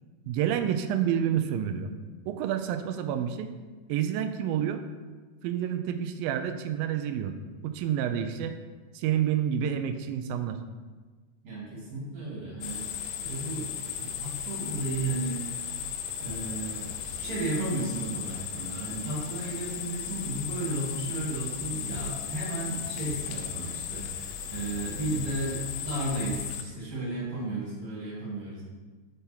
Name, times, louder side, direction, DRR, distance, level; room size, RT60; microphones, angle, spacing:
voice 1, 0.3-1.9 2.3-3.5 3.9-4.8 5.4-7.3 7.6-8.6 8.9-10.6, right 9 dB, 80° right, 8 dB, 2.2 m, -29 dB
voice 2, 11.4-15.7 16.2-28.6, right 2 dB, 50° right, -7 dB, 4.2 m, -34 dB
sound 1, 12.6-26.6, left 8 dB, 80° left, 2.1 m, -36 dB
8.5 x 8.1 x 3.7 m, 1.4 s
omnidirectional pair, 4.2 m